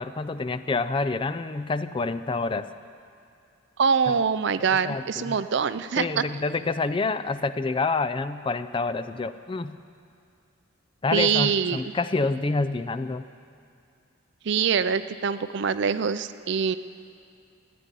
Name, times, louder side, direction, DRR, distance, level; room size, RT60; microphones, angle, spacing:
voice 1, 0.0-2.7 4.1-4.2 4.6-5.4 6.0-9.8 11.0-13.3, left 3 dB, 25° left, 12 dB, 0.4 m, -28 dB
voice 2, 3.8-6.2 11.1-11.8 14.5-16.8, right 6 dB, 55° right, 13 dB, 0.5 m, -24 dB
15.0 x 9.3 x 9.9 m, 2.5 s
head